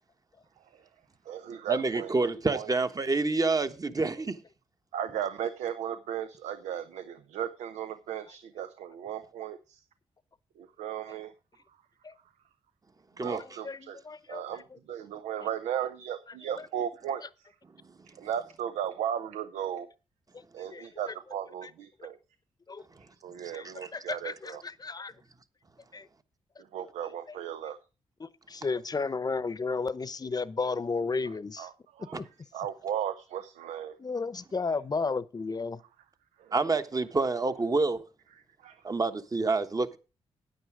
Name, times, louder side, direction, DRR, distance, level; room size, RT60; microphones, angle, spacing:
voice 1, 0.6-0.9 1.2-2.7 4.9-9.8 10.6-11.3 13.2-14.0 14.3-17.2 18.1-19.9 20.5-22.2 23.0-24.6 26.6-27.8 31.6-32.2 32.5-34.0 36.4-36.5 38.6-38.8, right 9 dB, 85° right, 0.7 m, -36 dB
voice 2, 1.7-4.3 13.2-13.4 17.8-17.9 23.4-23.9 32.1-32.2 36.5-38.0 38.8-40.0, right 3 dB, 30° right, 1.2 m, -28 dB
voice 3, 13.6-14.4 20.7-20.9 21.6-21.7 22.7-22.8 23.5-23.6 23.9-25.1 25.9-26.1 28.2-31.7 32.2-32.3 34.0-35.8, left 4 dB, 35° left, 0.8 m, -33 dB
9.4 x 9.3 x 4.9 m
supercardioid pair, 55°, 11 cm